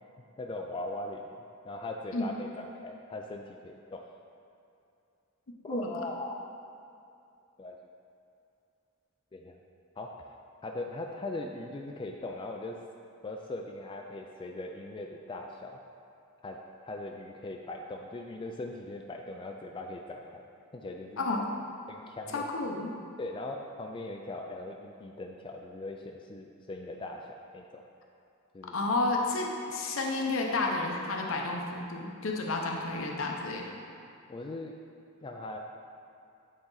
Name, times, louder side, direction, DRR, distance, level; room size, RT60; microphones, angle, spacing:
voice 1, 0.4-1.2 1.6-4.0 5.6-6.3 7.6-7.8 9.3-9.6 10.0-10.1 10.6-12.8 13.2-15.8 16.4-20.4 20.7-21.3 21.9-22.4 23.2-27.8 28.5-28.7 34.3-34.7 35.2-35.6, left 2 dB, 25° left, 1 dB, 0.3 m, -40 dB
voice 2, 21.2-21.5 22.3-22.9 28.7-33.8, left 2 dB, 75° left, 0 dB, 0.8 m, -31 dB
8.5 x 3.9 x 4.0 m, 2.6 s
head